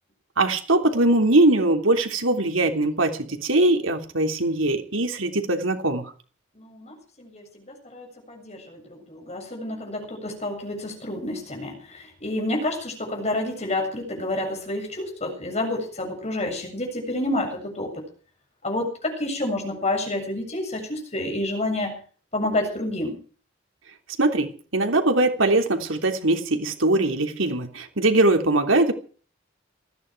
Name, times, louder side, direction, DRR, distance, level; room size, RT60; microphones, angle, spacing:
voice 1, 0.4-6.0 24.2-28.9, right 2 dB, 80° right, 5 dB, 3.3 m, -21 dB
voice 2, 6.6-18.1 18.6-22.0 22.3-23.2, left 1 dB, 35° left, 3 dB, 7.4 m, -29 dB
19.5 x 15.0 x 4.8 m, 0.41 s
head